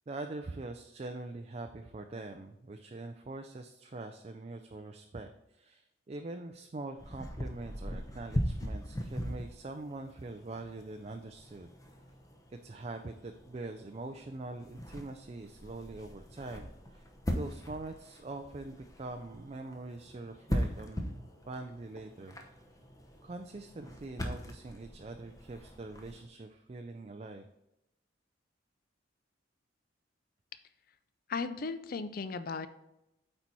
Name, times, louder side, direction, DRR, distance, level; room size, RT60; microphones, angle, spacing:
voice 1, 0.1-11.7 12.5-17.1 17.3-22.4 23.2-27.4, right 2 dB, 35° right, 6 dB, 0.4 m, -43 dB
sound 1, 7.0-26.3, equal, 20° left, 0.8 m, -40 dB
voice 2, 31.3-32.7, left 4 dB, 50° left, 11 dB, 0.4 m, -36 dB
8.8 x 4.4 x 4.1 m, 0.89 s
head